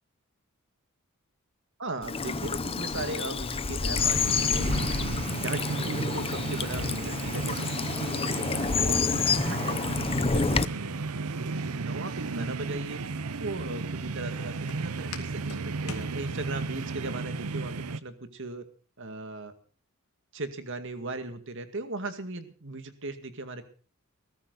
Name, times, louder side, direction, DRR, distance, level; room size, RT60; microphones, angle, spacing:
voice 1, 1.8-4.7 5.3-8.4 8.8-13.0 13.4-18.6 19.0-19.5 20.3-23.6, right 2 dB, 60° right, 9 dB, 2.2 m, -38 dB
Bird vocalization bird call bird song / Stream, 2.0-10.7, left 4 dB, 25° left, 0.6 m, -28 dB
sound 1, 4.0-18.0, right 4 dB, 80° right, 0.8 m, -34 dB
Walk footsteps, 12.2-16.8, left 5 dB, 85° left, 2.5 m, -47 dB
21.0 x 13.5 x 4.0 m, 0.40 s
head